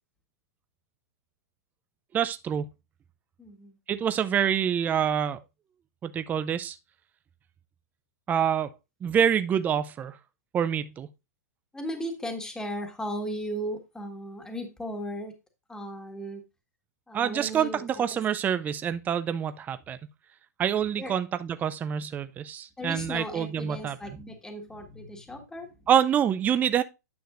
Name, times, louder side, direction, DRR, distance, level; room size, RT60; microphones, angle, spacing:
voice 1, 2.1-2.7 3.9-5.4 6.0-6.8 8.3-8.7 9.0-10.2 10.5-11.1 17.1-20.0 20.6-24.0 25.9-26.8, right 8 dB, 20° right, 0.4 m, -26 dB
voice 2, 3.4-3.8 11.7-15.3 15.7-16.4 17.1-18.0 21.0-21.1 22.8-25.7, equal, 5° left, 1.5 m, -36 dB
9.4 x 6.4 x 2.5 m
hypercardioid pair, 125°, 9 cm